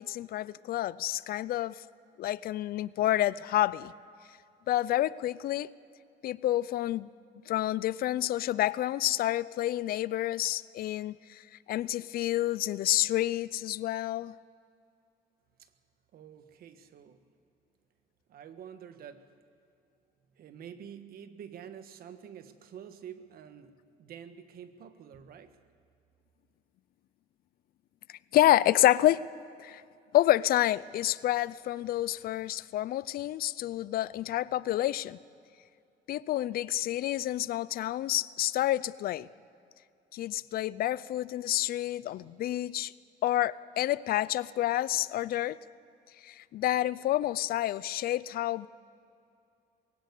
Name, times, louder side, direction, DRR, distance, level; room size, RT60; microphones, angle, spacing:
voice 1, 0.0-1.8 2.2-3.9 4.7-5.7 6.2-7.1 7.5-11.4 11.7-14.3 28.3-29.2 29.6-29.8 30.1-35.2 36.1-39.3 40.1-42.9 43.2-45.6 46.2-48.7, left 14 dB, 65° left, 20 dB, 0.5 m, -28 dB
voice 2, 16.1-17.2 18.3-19.3 20.3-25.5, right 8 dB, 60° right, 10 dB, 1.5 m, -48 dB
22.0 x 17.0 x 8.3 m, 2.5 s
cardioid pair, 110°, 17 cm